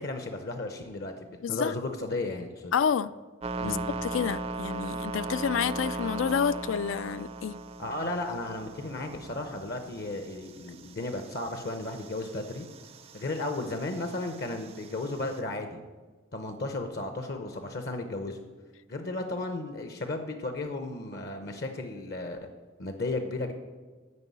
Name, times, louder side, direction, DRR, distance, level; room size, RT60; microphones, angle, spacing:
voice 1, 0.0-2.7 3.6-3.9 7.8-12.7 13.1-15.8 16.3-18.4 18.9-22.4 22.8-23.5, left 2 dB, 50° left, 6 dB, 0.7 m, -34 dB
voice 2, 1.4-1.7 2.7-3.1 3.6-7.6, left 7 dB, 80° left, 17 dB, 0.4 m, -29 dB
sound 1, 3.4-15.4, right 3 dB, 30° right, 0.4 m, -39 dB
9.6 x 5.4 x 8.2 m, 1.4 s
head